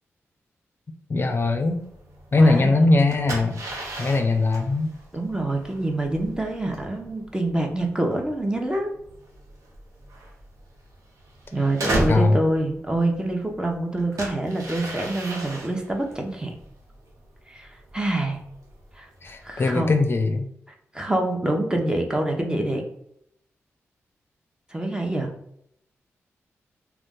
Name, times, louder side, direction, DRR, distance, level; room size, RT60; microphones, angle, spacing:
voice 1, 1.1-1.8 2.3-3.6 4.0-4.9 12.1-12.4 19.2-20.5, left 2 dB, 45° left, 6 dB, 0.4 m, -20 dB
sound 1, 1.3-19.7, right 1 dB, 80° right, 0.8 m, -36 dB
voice 2, 2.4-2.7 5.1-8.9 11.5-16.5 17.5-18.4 19.0-19.1 19.4-19.9 20.9-22.8 24.7-25.3, right 1 dB, 15° right, 2 dB, 0.8 m, -26 dB
2.5 x 2.3 x 3.6 m, 0.72 s
cardioid pair, 50°, 5 cm